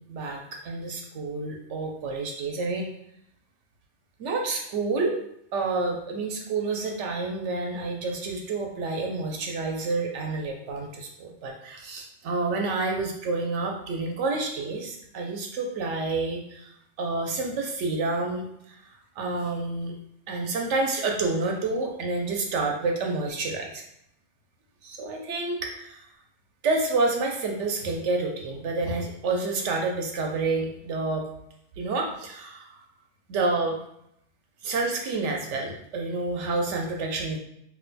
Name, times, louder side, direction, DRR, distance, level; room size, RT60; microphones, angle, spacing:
voice 1, 0.1-2.9 4.2-5.2 5.5-16.7 17.0-18.8 19.2-19.9 20.3-23.8 24.8-26.0 26.6-31.3 31.8-32.8 33.3-33.8 34.6-37.4, right 3 dB, 80° right, 1 dB, 1.0 m, -29 dB
2.6 x 2.2 x 3.9 m, 0.75 s
omnidirectional pair, 1.2 m